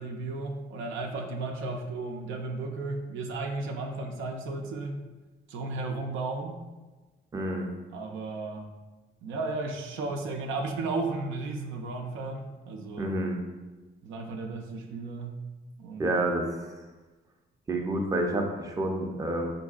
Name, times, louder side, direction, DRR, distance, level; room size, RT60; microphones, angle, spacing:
voice 1, 0.0-5.0 5.5-6.6 7.9-8.7 9.2-13.1 14.0-15.4 15.8-16.1, right 3 dB, 80° right, 2 dB, 0.5 m, -34 dB
voice 2, 7.3-7.7 13.0-13.4 16.0-16.5 17.7-19.5, right 1 dB, 15° right, 2 dB, 0.4 m, -28 dB
3.8 x 2.6 x 2.3 m, 1.2 s
cardioid pair, 90°, 20 cm